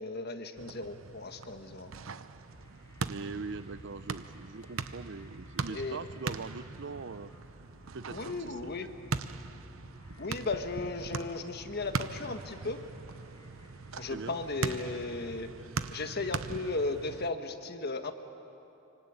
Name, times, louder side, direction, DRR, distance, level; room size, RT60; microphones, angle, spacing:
voice 1, 0.0-1.9 5.7-6.0 8.1-8.9 10.2-12.8 14.0-15.5 15.9-18.1, left 3 dB, 55° left, 7 dB, 1.5 m, -35 dB
sound 1, 0.6-17.3, right 4 dB, 90° right, 0.9 m, -40 dB
sound 2, 2.5-14.5, equal, 20° left, 4.5 m, -55 dB
voice 2, 3.1-7.3 7.9-8.7 14.0-14.4, right 4 dB, 60° right, 15 dB, 0.7 m, -42 dB
25.5 x 24.5 x 8.8 m, 3.0 s
head